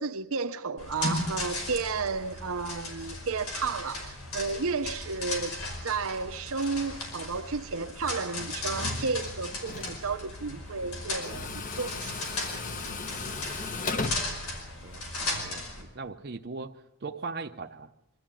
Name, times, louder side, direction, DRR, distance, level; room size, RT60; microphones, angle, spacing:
voice 1, 0.0-5.6 5.8-12.1, right 4 dB, 75° right, 0.8 m, -32 dB
sound 1, 0.8-15.8, left 2 dB, 90° left, 5.3 m, -36 dB
Tools, 9.0-15.3, left 3 dB, 35° left, 1.0 m, -37 dB
voice 2, 14.8-16.7 17.0-17.9, right 4 dB, 50° right, 0.7 m, -39 dB
24.5 x 13.0 x 8.9 m
head